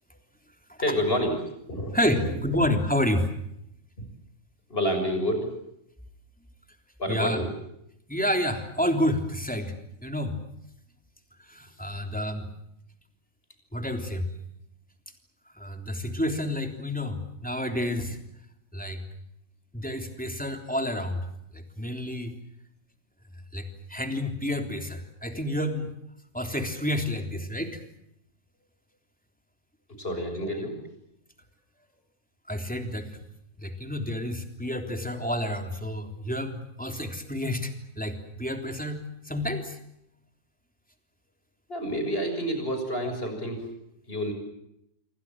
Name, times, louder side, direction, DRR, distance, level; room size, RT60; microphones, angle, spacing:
voice 1, 0.8-2.4 4.7-5.5 7.0-7.5 30.0-30.8 41.7-43.7 44.1-44.3, equal, 45° left, 6 dB, 6.9 m, -29 dB
voice 2, 1.9-3.2 7.1-7.4 8.1-9.7 10.0-10.3 11.5-12.4 13.7-14.3 15.6-18.2 18.7-19.0 19.7-21.2 21.5-22.3 23.5-25.9 26.3-27.8 32.5-33.1 33.6-39.8, left 1 dB, 5° left, 5 dB, 3.4 m, -29 dB
27.5 x 25.0 x 7.5 m, 0.78 s
omnidirectional pair, 1.4 m